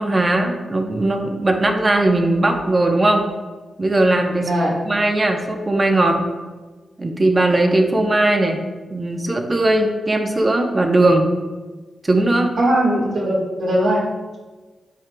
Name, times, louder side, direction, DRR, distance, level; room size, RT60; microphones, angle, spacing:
voice 1, 0.0-3.2 3.8-4.5 4.9-6.2 7.0-8.6 8.9-11.3 12.0-12.5, right 2 dB, 35° right, 4 dB, 0.9 m, -18 dB
voice 2, 4.4-4.7 12.6-14.0, right 1 dB, 70° right, -3 dB, 1.6 m, -19 dB
9.2 x 4.7 x 2.3 m, 1.3 s
supercardioid pair, 50°, 0 cm